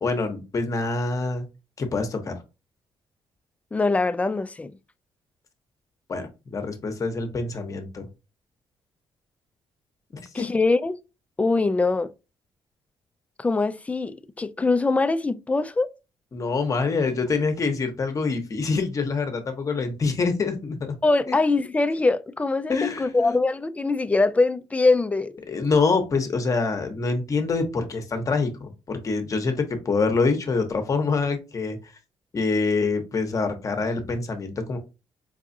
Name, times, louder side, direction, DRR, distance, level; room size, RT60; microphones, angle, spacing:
voice 1, 0.0-1.5 1.8-2.3 6.1-8.0 10.1-10.5 16.3-21.0 21.3-21.4 22.7-23.4 25.5-31.8 32.3-34.8, left 4 dB, 35° left, 0.9 m, -25 dB
voice 2, 3.7-4.7 10.3-11.0 11.4-12.1 13.4-15.9 21.0-25.3, left 3 dB, 15° left, 0.3 m, -23 dB
4.8 x 2.3 x 2.6 m
cardioid pair, 105°, 9 cm